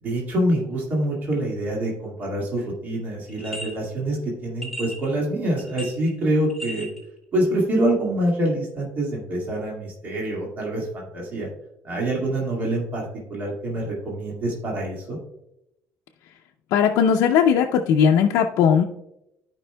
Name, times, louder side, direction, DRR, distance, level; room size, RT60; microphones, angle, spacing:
voice 1, 0.0-6.9 7.3-11.5 11.8-15.2, right 1 dB, 35° right, -3 dB, 2.0 m, -26 dB
sound 1, 3.3-3.7 4.6-5.1 5.6-6.2 6.5-7.0, equal, ahead, 1.7 m, -35 dB
voice 2, 16.7-18.8, left 7 dB, 85° left, 1 dB, 0.5 m, -18 dB
14.0 x 5.2 x 2.2 m, 0.83 s
cardioid pair, 175°, 5 cm